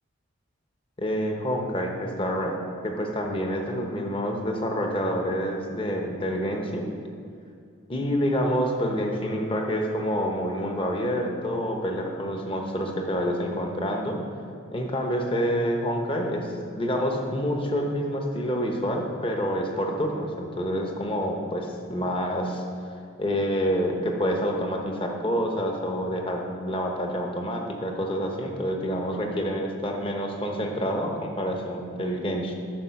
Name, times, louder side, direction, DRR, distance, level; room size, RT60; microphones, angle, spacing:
voice 1, 1.0-6.9 7.9-14.2 14.7-22.6 23.2-32.6, equal, 25° left, 1 dB, 1.0 m, -27 dB
12.5 x 5.6 x 5.8 m, 2.4 s
head